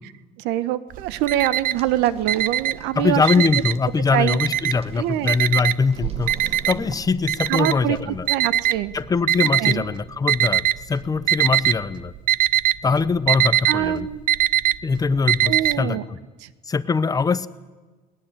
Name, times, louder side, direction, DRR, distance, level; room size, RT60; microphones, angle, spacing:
voice 1, 0.4-3.2 4.1-4.4 5.0-5.4 7.5-8.9 9.6-9.9 13.7-14.2 15.5-16.0 16.4-16.5, right 13 dB, 90° right, 16 dB, 1.2 m, -24 dB
Alarm, 0.9-1.9 2.2-3.9 4.3-4.9 5.3-9.8 10.3-10.9 11.2-11.8 12.1-15.8, right 12 dB, 55° right, 0.7 m, -21 dB
sound 1, 1.7-6.9, right 4 dB, 35° right, 2.4 m, -44 dB
voice 2, 3.0-6.3 6.7-8.3 8.9-12.1 12.8-14.1 14.8-16.2 16.7-17.5, left 4 dB, 20° left, 14 dB, 0.9 m, -22 dB
21.5 x 20.0 x 9.1 m, 1.3 s
cardioid pair, 140°, 17 cm